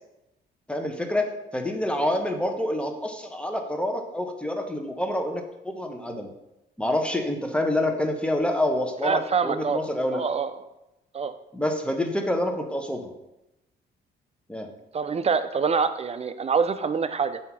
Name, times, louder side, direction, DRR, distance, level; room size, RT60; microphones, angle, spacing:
voice 1, 0.7-6.3 6.8-10.2 11.5-13.1 14.5-14.7, left 1 dB, 5° left, 4 dB, 1.0 m, -27 dB
voice 2, 9.0-9.8 10.1-10.5 11.1-11.3 14.9-17.4, right 5 dB, 30° right, 11 dB, 0.5 m, -25 dB
7.7 x 2.8 x 6.0 m, 0.94 s
cardioid pair, 90°, 20 cm